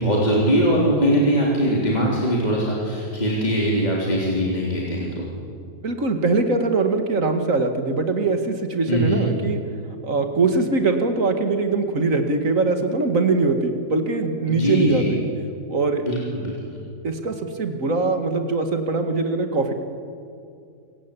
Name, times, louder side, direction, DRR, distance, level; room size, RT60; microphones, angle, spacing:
voice 1, 0.0-5.3 8.9-9.2 14.5-15.1 16.0-16.8, equal, 25° left, -4 dB, 3.7 m, -21 dB
voice 2, 5.8-9.6 10.0-15.2 15.7-16.0 17.0-19.7, right 3 dB, 60° right, 6 dB, 2.4 m, -22 dB
27.0 x 16.5 x 8.6 m, 2.4 s
omnidirectional pair, 1.6 m